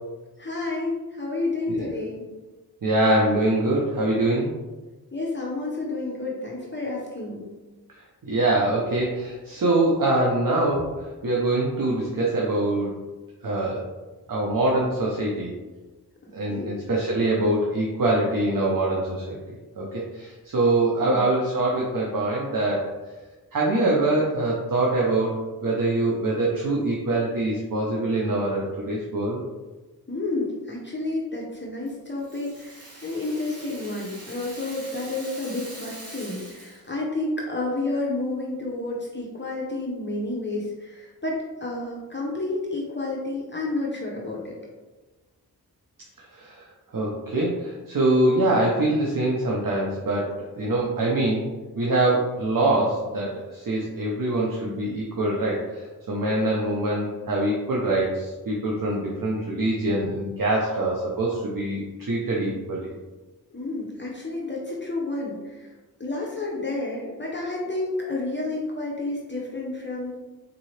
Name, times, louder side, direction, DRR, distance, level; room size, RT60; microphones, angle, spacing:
voice 1, 0.4-2.3 5.1-7.4 16.5-16.7 21.0-21.2 30.1-44.6 63.5-65.7 66.0-70.2, left 2 dB, 30° left, -4 dB, 0.7 m, -30 dB
voice 2, 2.8-4.5 8.2-12.9 13.4-13.8 14.3-15.5 16.3-22.9 23.5-25.3 25.6-29.4 46.3-51.5 51.7-62.9, right 2 dB, 60° right, -3 dB, 0.7 m, -24 dB
Rattle (instrument), 31.9-36.9, right 1 dB, 40° right, 1.3 m, -43 dB
3.9 x 2.8 x 3.1 m, 1.2 s
wide cardioid pair, 55°, 38 cm